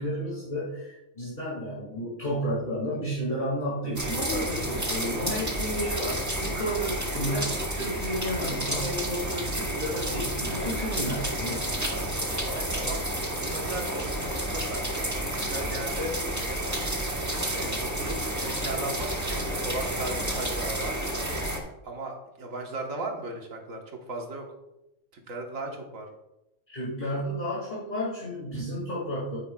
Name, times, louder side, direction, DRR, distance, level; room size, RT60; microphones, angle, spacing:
voice 1, 0.0-12.2 26.7-29.4, equal, 35° left, -7 dB, 2.3 m, -32 dB
sound 1, 4.0-21.6, right 1 dB, 15° right, 1.2 m, -30 dB
voice 2, 12.5-16.8 17.5-21.0 21.8-23.8 24.1-24.5 25.1-26.1, right 2 dB, 85° right, 1 dB, 1.7 m, -37 dB
9.7 x 8.5 x 2.3 m, 0.93 s
omnidirectional pair, 1.3 m